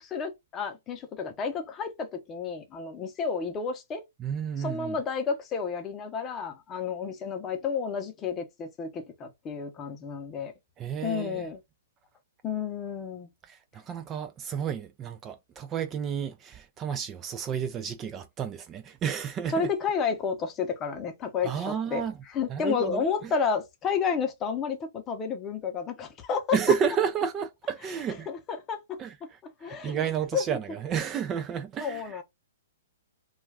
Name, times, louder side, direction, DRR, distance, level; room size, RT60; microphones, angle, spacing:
voice 1, 0.0-4.0 4.6-10.5 11.0-11.6 12.4-13.3 19.5-22.0 22.3-26.4 28.3-29.0 29.4-30.0 30.3-30.4 31.8-32.2, left 6 dB, 25° left, 0.7 m, -31 dB
voice 2, 4.2-5.0 10.8-11.5 13.4-19.7 21.4-22.2 22.5-23.3 26.5-28.3 29.0-32.2, right 7 dB, 25° right, 0.3 m, -31 dB
2.4 x 2.3 x 3.3 m
hypercardioid pair, 135°, 0 cm